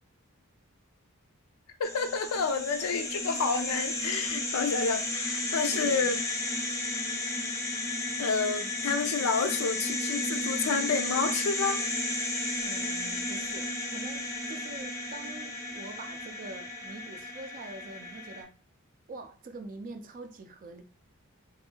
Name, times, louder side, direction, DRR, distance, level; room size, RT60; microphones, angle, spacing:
voice 1, 1.8-6.2 7.1-7.2 8.2-11.8, left 5 dB, 75° left, 0.4 m, -29 dB
sound 1, 1.8-18.4, left 1 dB, 15° left, 0.5 m, -33 dB
voice 2, 5.7-6.2 12.6-18.5 19.1-20.8, right 2 dB, 40° right, 0.4 m, -44 dB
2.7 x 2.6 x 2.8 m
head